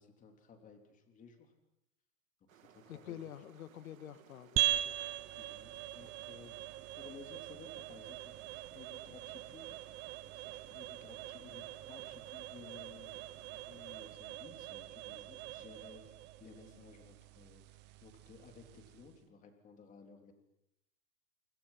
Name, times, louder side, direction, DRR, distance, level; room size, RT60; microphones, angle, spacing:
voice 1, 0.0-1.5 2.4-3.2 5.4-6.5 7.0-10.0 10.3-20.3, left 5 dB, 20° left, 4 dB, 3.6 m, -57 dB
sound 1, 2.5-14.2, right 10 dB, 75° right, 3.1 m, -63 dB
voice 2, 2.9-5.0, left 10 dB, 80° left, 11 dB, 1.9 m, -48 dB
sound 2, 4.6-19.2, right 14 dB, 25° right, 0.9 m, -41 dB
28.5 x 26.5 x 5.9 m, 0.83 s
supercardioid pair, 150°, 41 cm